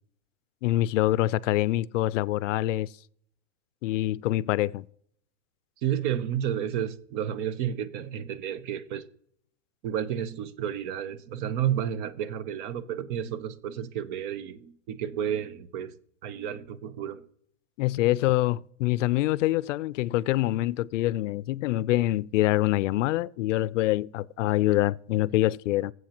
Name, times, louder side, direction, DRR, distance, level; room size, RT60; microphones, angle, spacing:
voice 1, 0.6-2.9 3.8-4.8 17.8-25.9, left 16 dB, 75° left, 0.5 m, -25 dB
voice 2, 5.8-9.0 9.8-15.9 16.2-17.2, right 9 dB, 40° right, 0.7 m, -31 dB
19.5 x 7.9 x 3.0 m
supercardioid pair, 155°, 37 cm